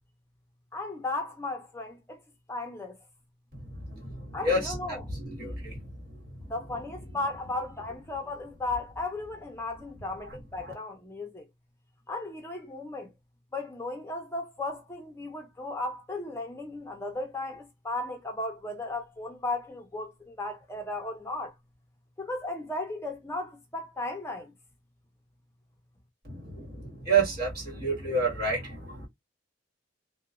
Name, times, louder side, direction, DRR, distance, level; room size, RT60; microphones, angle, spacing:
voice 1, 0.7-2.2 2.5-3.0 4.3-5.1 6.4-11.5 12.1-13.1 13.5-21.5 22.2-24.5, left 2 dB, 15° left, 0.5 m, -35 dB
voice 2, 3.6-4.8 5.4-5.8 26.2-29.1, right 3 dB, 55° right, 1.6 m, -29 dB
2.9 x 2.0 x 2.4 m
head